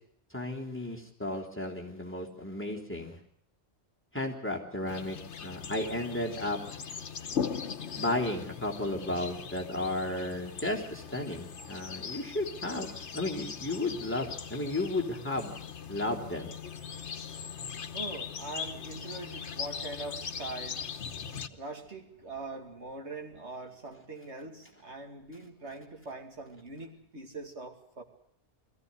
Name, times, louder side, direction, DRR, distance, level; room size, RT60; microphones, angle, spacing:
voice 1, 0.3-3.2 4.1-6.6 8.0-15.5 15.9-16.5, left 1 dB, 10° left, -2 dB, 3.4 m, -33 dB
sound 1, 4.9-21.5, left 6 dB, 85° left, 1.4 m, -40 dB
voice 2, 16.9-28.0, right 2 dB, 85° right, 4 dB, 2.8 m, -43 dB
22.0 x 15.0 x 9.6 m, 0.69 s
omnidirectional pair, 1.1 m